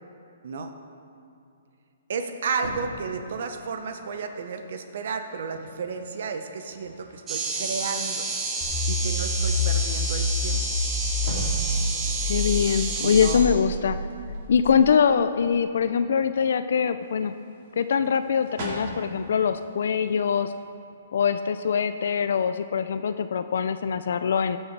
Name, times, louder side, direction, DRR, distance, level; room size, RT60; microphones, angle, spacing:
voice 1, 2.1-8.3 8.9-10.6 13.0-13.5, right 5 dB, 55° right, 7 dB, 0.7 m, -32 dB
sound 1, 2.5-14.6 17.0-20.7, equal, 35° right, 2.2 m, -43 dB
sound 2, 7.3-13.3, right 3 dB, 10° right, 1.0 m, -30 dB
sound 3, 8.6-14.9, left 1 dB, 10° left, 1.9 m, -28 dB
voice 2, 12.3-14.0 14.5-17.3 17.8-20.5 21.1-24.6, left 7 dB, 65° left, 11 dB, 0.4 m, -23 dB
15.5 x 6.4 x 4.6 m, 2.6 s
hypercardioid pair, 170°, 0 cm